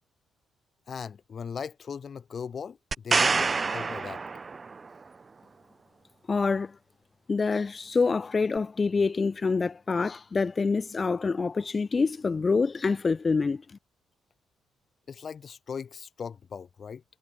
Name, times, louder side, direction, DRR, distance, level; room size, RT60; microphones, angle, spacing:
voice 1, 0.9-4.2 15.1-17.0, left 6 dB, 45° left, 1.0 m, -39 dB
sound 1, 2.9-4.9 8.6-8.7, right 4 dB, 30° right, 0.3 m, -27 dB
voice 2, 6.3-6.7 7.3-13.6, left 4 dB, 30° left, 0.6 m, -26 dB
cardioid pair, 90°, 0 cm